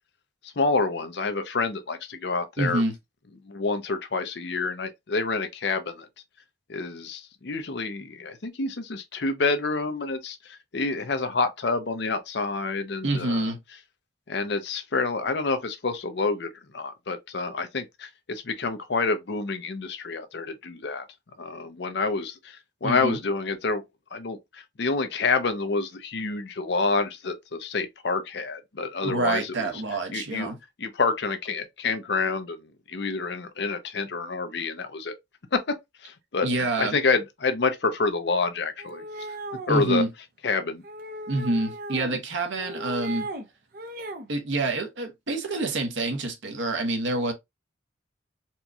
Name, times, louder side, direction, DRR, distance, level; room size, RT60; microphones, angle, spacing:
voice 1, 0.4-2.8 3.5-6.1 6.7-13.5 14.3-21.0 21.4-23.8 24.1-29.7 30.1-30.5 30.8-32.6 32.9-35.2 35.5-35.6 36.0-36.5 36.8-39.0 39.7-40.0 40.4-40.8, left 4 dB, 65° left, 0.7 m, -28 dB
voice 2, 2.6-2.9 13.0-13.6 22.8-23.2 29.0-30.6 36.4-37.0 39.7-40.1 41.3-43.3 44.3-47.3, right 2 dB, 85° right, 1.0 m, -27 dB
sound 1, 38.8-39.9 40.8-42.2 42.5-43.4 43.7-44.3, right 1 dB, 55° right, 0.6 m, -37 dB
4.4 x 2.3 x 2.6 m
head